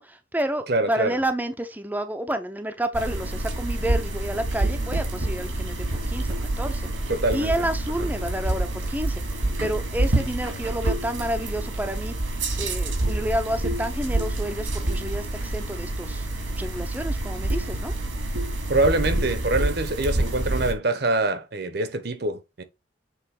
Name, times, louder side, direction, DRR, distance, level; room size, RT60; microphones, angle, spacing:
voice 1, 0.0-12.3 12.6-17.9, right 1 dB, 10° right, 0.7 m, -30 dB
voice 2, 0.7-1.2 7.1-7.5 18.7-22.6, right 2 dB, 55° right, 1.1 m, -24 dB
sound 1, 2.9-20.7, right 1 dB, 85° right, 2.4 m, -27 dB
7.6 x 3.8 x 3.8 m
head